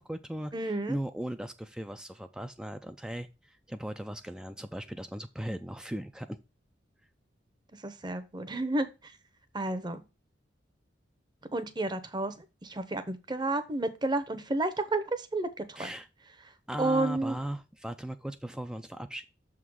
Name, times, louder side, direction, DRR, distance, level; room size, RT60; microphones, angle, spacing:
voice 1, 0.0-6.4 15.8-16.1 16.7-19.2, right 1 dB, 5° right, 8 dB, 0.3 m, -38 dB
voice 2, 0.5-1.0 7.8-8.9 9.5-10.0 11.5-12.3 12.6-15.9 16.8-17.4, right 2 dB, 25° right, 11 dB, 0.8 m, -31 dB
6.7 x 3.7 x 6.3 m, 0.28 s
head